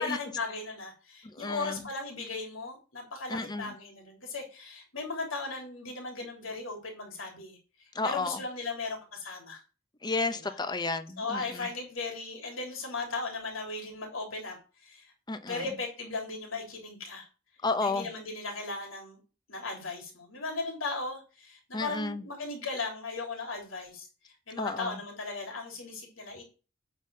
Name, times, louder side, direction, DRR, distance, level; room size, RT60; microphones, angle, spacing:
voice 1, 0.0-7.6 8.0-9.6 10.4-10.5 11.2-14.6 14.8-15.1 15.5-17.3 17.8-19.2 19.5-24.1 24.5-26.4, left 3 dB, 85° left, 3.4 m, -37 dB
voice 2, 1.3-1.9 3.3-3.7 7.9-8.4 10.0-11.7 15.3-15.8 17.6-18.1 21.7-22.2 24.6-25.0, left 3 dB, 20° left, 0.7 m, -32 dB
9.0 x 4.1 x 6.4 m
head